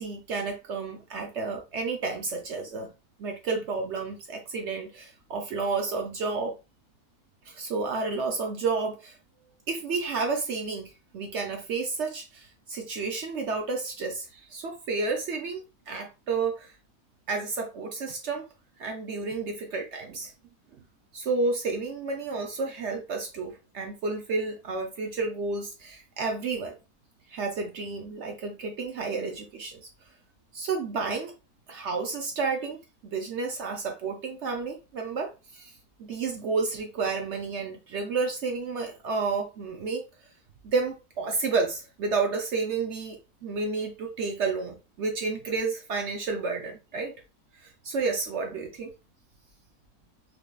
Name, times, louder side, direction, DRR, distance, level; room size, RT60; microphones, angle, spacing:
voice 1, 0.0-2.9 3.2-6.5 7.5-9.1 9.7-16.8 17.3-18.4 18.8-20.3 21.1-26.8 27.3-29.9 30.5-31.3 31.7-32.8 33.0-35.7 36.0-40.0 40.6-47.1 47.5-48.9, right 4 dB, 60° right, 0.8 m, -31 dB
3.9 x 3.3 x 2.3 m
omnidirectional pair, 1.6 m